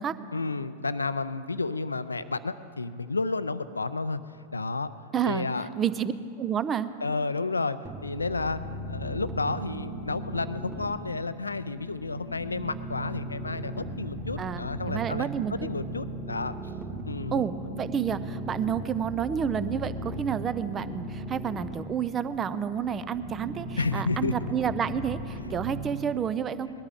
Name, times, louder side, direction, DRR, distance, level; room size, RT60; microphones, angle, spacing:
voice 1, 0.3-4.2 4.5-4.9 5.3-5.7 7.0-16.5 17.1-17.5 23.8-24.3, left 3 dB, 80° left, 14 dB, 0.4 m, -31 dB
voice 2, 5.1-5.5 5.8-6.1 6.4-6.9 14.4-15.5 17.3-26.7, right 8 dB, 25° right, 14 dB, 0.6 m, -30 dB
sound 1, 7.8-25.7, right 1 dB, 10° right, 2.2 m, -37 dB
20.5 x 13.0 x 3.8 m, 2.5 s
figure-of-eight pair, 90°, 0 cm